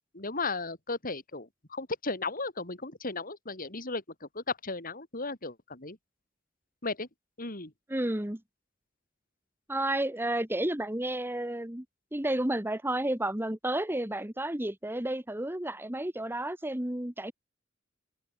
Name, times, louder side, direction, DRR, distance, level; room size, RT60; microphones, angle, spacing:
voice 1, 0.1-6.0 6.8-7.1 7.4-7.7, left 3 dB, 45° left, 6.3 m, -35 dB
voice 2, 7.9-8.4 9.7-11.8 12.1-17.3, right 1 dB, 10° right, 1.5 m, -31 dB
head